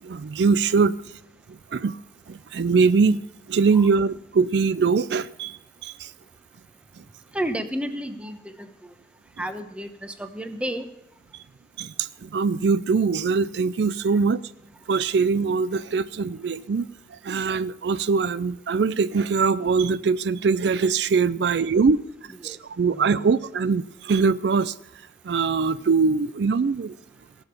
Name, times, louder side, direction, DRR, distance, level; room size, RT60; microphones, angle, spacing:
voice 1, 0.0-1.2 1.5-2.0 2.3-3.2 3.5-6.1 7.0-7.1 11.3-11.4 11.8-14.4 14.9-22.0 22.4-27.0, right 5 dB, 75° right, 0.4 m, -22 dB
voice 2, 7.3-8.7 9.4-10.9 21.5-21.7 22.4-22.6 22.9-23.3, equal, 5° right, 0.9 m, -32 dB
17.5 x 7.0 x 6.8 m
head